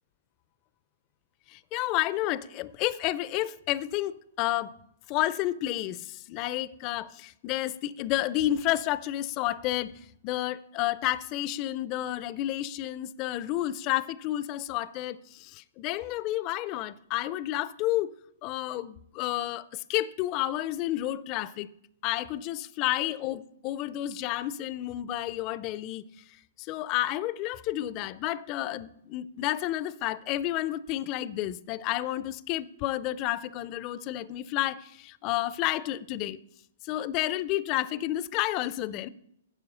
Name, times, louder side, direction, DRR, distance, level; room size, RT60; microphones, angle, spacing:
voice 1, 1.5-4.7 5.1-9.9 10.2-18.1 18.4-21.7 22.0-26.0 26.6-36.4 36.8-39.1, left 14 dB, 35° left, 0.4 m, -30 dB
10.5 x 4.8 x 6.2 m
hypercardioid pair, 125°, 0 cm